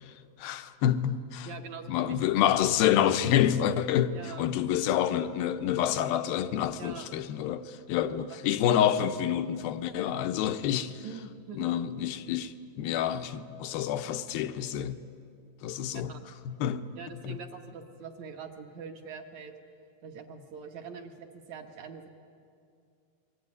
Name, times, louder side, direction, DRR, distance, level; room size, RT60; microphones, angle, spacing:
voice 1, 0.4-1.5 1.9-11.0 11.6-15.0 15.6-16.1 16.5-16.9 17.2-17.4, left 10 dB, 75° left, 2.5 m, -28 dB
voice 2, 1.5-2.7 4.1-4.5 6.8-7.1 8.5-8.8 11.0-11.8 15.9-16.2 17.0-19.5 20.0-22.1, right 6 dB, 55° right, 2.4 m, -44 dB
26.0 x 23.5 x 9.7 m
omnidirectional pair, 4.7 m